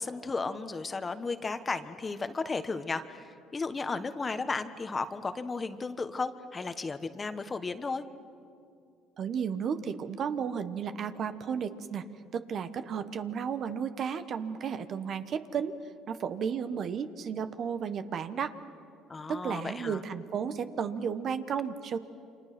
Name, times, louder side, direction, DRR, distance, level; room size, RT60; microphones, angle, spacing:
voice 1, 0.0-8.0 19.1-20.0, left 4 dB, 25° left, 10 dB, 1.3 m, -34 dB
voice 2, 9.2-12.0 12.3-15.8 16.1-18.5 19.3-22.0, right 7 dB, 55° right, 10 dB, 1.2 m, -33 dB
29.5 x 25.5 x 6.0 m, 2.4 s
supercardioid pair, 85°, 0 cm